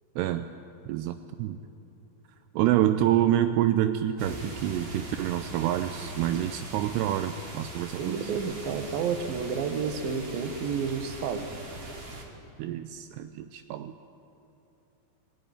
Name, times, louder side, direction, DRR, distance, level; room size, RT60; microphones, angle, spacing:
voice 1, 0.9-1.6 2.5-8.3 12.6-14.0, right 12 dB, 85° right, 9 dB, 2.7 m, -27 dB
sound 1, 4.2-12.2, right 1 dB, 40° right, 2.8 m, -41 dB
voice 2, 8.0-11.5, right 6 dB, 70° right, 7 dB, 2.8 m, -30 dB
22.5 x 13.5 x 9.9 m, 2.8 s
omnidirectional pair, 4.8 m